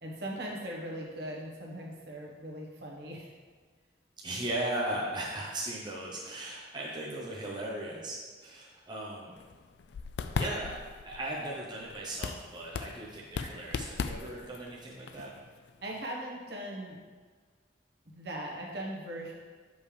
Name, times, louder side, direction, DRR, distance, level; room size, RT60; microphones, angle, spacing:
voice 1, 0.0-3.3 15.8-17.0 18.1-19.3, right 1 dB, 65° right, -2 dB, 1.2 m, -39 dB
voice 2, 4.2-9.3 10.4-10.8 11.0-15.3, right 1 dB, 25° right, -4 dB, 0.8 m, -37 dB
sound 1, 9.3-16.0, left 5 dB, 65° left, 0.3 m, -38 dB
6.7 x 5.4 x 3.3 m, 1.5 s
head